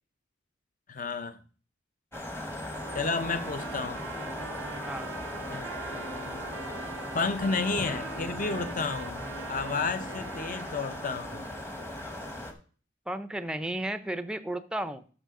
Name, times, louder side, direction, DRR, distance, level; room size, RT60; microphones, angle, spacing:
voice 1, 0.9-1.4 2.9-4.0 5.5-6.5 7.1-9.2 9.5-11.5, left 4 dB, 40° left, 0.7 m, -32 dB
sound 1, 2.1-12.5, left 1 dB, 15° left, 1.0 m, -38 dB
Trumpet, 2.7-11.1, right 8 dB, 70° right, 0.4 m, -44 dB
sound 2, 2.8-11.6, right 1 dB, 80° left, 2.0 m, -47 dB
voice 2, 13.1-15.0, right 1 dB, 5° right, 0.5 m, -33 dB
11.0 x 6.6 x 3.7 m
head